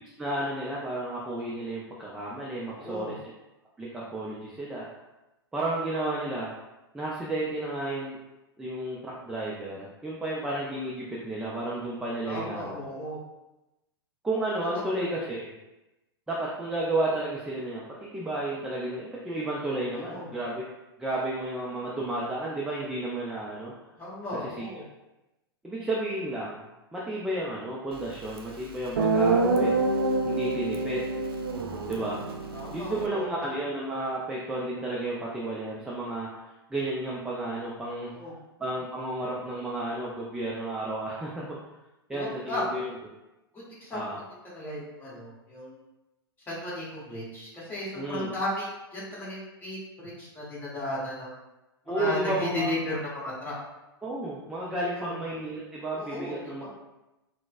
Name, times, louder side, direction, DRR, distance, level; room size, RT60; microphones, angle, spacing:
voice 1, 0.2-3.2 3.8-4.9 5.5-6.5 6.9-8.2 8.6-12.8 14.2-15.5 16.3-20.7 21.0-23.7 24.4-24.7 25.6-26.6 26.9-29.8 30.2-31.2 31.9-32.2 32.7-36.3 36.7-38.1 38.6-41.6 42.1-42.9 43.9-44.2 47.9-48.3 51.9-52.7 54.0-56.7, right 1 dB, 5° right, -5 dB, 0.4 m, -32 dB
voice 2, 2.7-3.1 12.3-13.2 20.1-20.3 24.0-24.8 32.5-33.2 38.1-38.3 42.1-42.6 43.5-44.1 44.5-45.8 46.5-48.7 48.9-51.3 51.8-53.5 54.9-55.2 55.9-56.7, left 1 dB, 15° left, -8 dB, 1.2 m, -35 dB
Guitar, 28.4-28.5 29.0-33.1, right 3 dB, 70° right, 0.5 m, -26 dB
3.9 x 2.1 x 2.3 m, 0.99 s
figure-of-eight pair, 100°, 13 cm